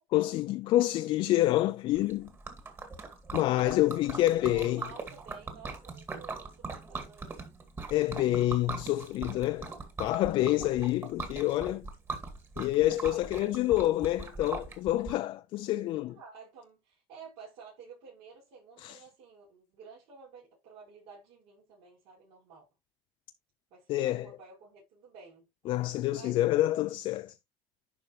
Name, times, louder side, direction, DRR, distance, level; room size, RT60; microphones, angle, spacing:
voice 1, 0.1-2.3 3.3-4.8 7.9-9.7 10.0-11.9 12.6-16.2 18.8-19.0 23.9-24.3 25.7-27.3, left 15 dB, 65° left, 0.5 m, -27 dB
Liquid, 1.9-15.1, right 4 dB, 25° right, 2.1 m, -41 dB
voice 2, 3.5-3.8 4.4-7.6 13.1-13.9 16.1-22.7 23.7-25.5 26.1-26.5, right 5 dB, 80° right, 5.2 m, -52 dB
11.0 x 4.8 x 3.1 m
cardioid pair, 135°, 10 cm